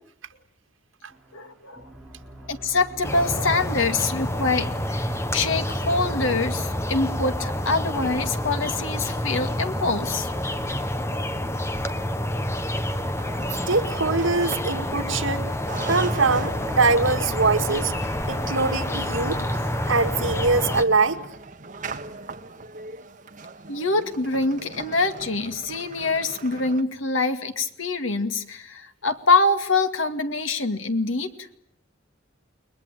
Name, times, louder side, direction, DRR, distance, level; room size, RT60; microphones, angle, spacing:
sound 1, 1.1-11.1, right 1 dB, ahead, 4.8 m, -46 dB
voice 1, 1.3-1.8 2.5-10.3 23.7-31.3, left 3 dB, 90° left, 2.3 m, -25 dB
sound 2, 3.0-20.8, left 1 dB, 15° left, 1.4 m, -28 dB
sound 3, 13.2-15.3 15.7-26.8, right 4 dB, 40° right, 1.7 m, -40 dB
voice 2, 13.7-15.5 15.9-17.9 18.3-19.4 19.9-21.2, right 3 dB, 85° right, 2.0 m, -23 dB
30.0 x 21.5 x 9.1 m
head